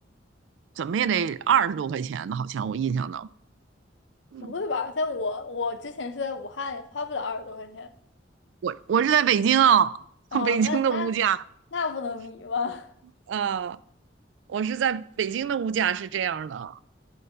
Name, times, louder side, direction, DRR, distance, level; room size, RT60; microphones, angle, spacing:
voice 1, 0.8-3.3 4.3-4.5 8.6-9.9 10.3-11.4 13.3-13.8 14.5-16.8, right 8 dB, 80° right, 0.3 m, -24 dB
voice 2, 4.4-7.9 10.3-11.1 11.7-12.9, left 4 dB, 75° left, 0.7 m, -31 dB
11.0 x 4.0 x 5.3 m
head